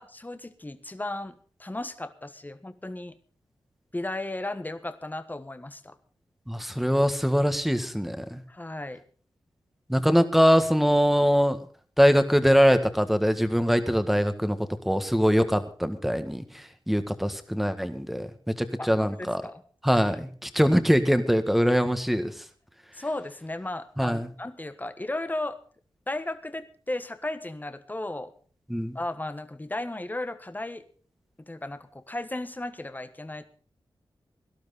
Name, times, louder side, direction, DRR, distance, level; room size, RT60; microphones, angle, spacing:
voice 1, 0.0-1.3 1.6-3.1 3.9-5.9 8.5-9.0 18.8-19.6 19.9-20.0 22.9-25.6 26.1-28.3 28.9-30.8 31.5-33.5, left 2 dB, 20° left, 10 dB, 1.3 m, -35 dB
voice 2, 6.5-8.4 9.9-11.6 12.0-14.6 14.9-19.4 19.8-22.4 24.0-24.3 28.7-29.0, equal, ahead, 9 dB, 1.7 m, -23 dB
18.0 x 12.0 x 4.1 m, 0.43 s
cardioid pair, 55°, 9 cm